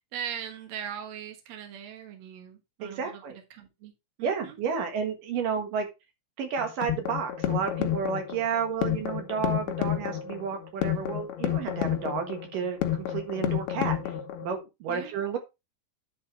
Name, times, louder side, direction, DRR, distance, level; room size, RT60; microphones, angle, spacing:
voice 1, 0.0-3.9 4.2-4.6 14.9-15.2, right 9 dB, 85° right, 4 dB, 1.5 m, -40 dB
voice 2, 2.8-3.4 4.2-5.9 6.4-14.1 14.4-15.4, right 6 dB, 60° right, 5 dB, 2.5 m, -31 dB
sound 1, 6.6-14.6, left 11 dB, 75° left, 2.3 m, -30 dB
10.5 x 4.3 x 4.6 m, 0.25 s
omnidirectional pair, 5.5 m